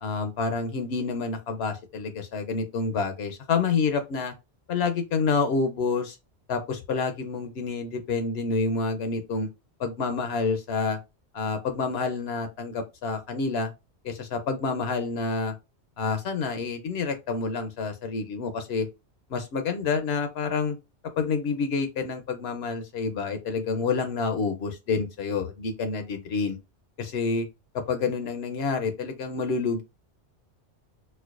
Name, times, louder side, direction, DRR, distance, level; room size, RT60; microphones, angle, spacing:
voice 1, 0.0-4.3 4.7-6.2 6.5-9.5 9.8-11.0 11.3-13.7 14.0-15.5 16.0-18.9 19.3-20.8 21.2-26.6 27.0-27.5 27.9-29.8, left 4 dB, 70° left, 0.8 m, -28 dB
4.4 x 2.1 x 2.4 m
omnidirectional pair, 1.1 m